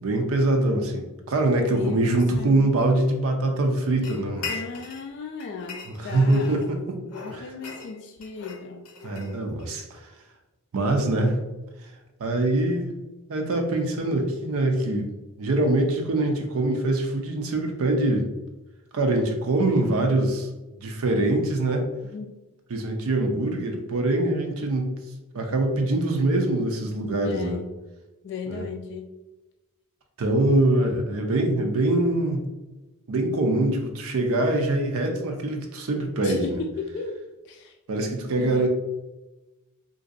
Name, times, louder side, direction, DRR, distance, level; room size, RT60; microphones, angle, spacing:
voice 1, 0.0-4.5 6.0-7.0 7.3-7.4 9.0-10.1 10.7-11.4 11.8-11.9 12.2-13.0 13.3-15.1 15.4-18.3 18.9-20.5 20.8-21.8 22.7-24.9 25.3-27.6 28.5-28.6 30.2-32.4 33.1-36.6 37.9-38.7, right 2 dB, 65° right, 3 dB, 0.5 m, -23 dB
voice 2, 1.7-2.8 4.5-6.7 7.0-8.9 22.0-22.3 27.2-27.7 28.2-29.2 36.2-37.2 37.4-37.8 38.2-38.7, left 4 dB, 50° left, 3 dB, 0.3 m, -36 dB
sound 1, 4.0-5.1 5.4-6.7 7.1-9.8, left 5 dB, 85° left, 0.6 m, -39 dB
3.8 x 2.6 x 2.5 m, 1.1 s
head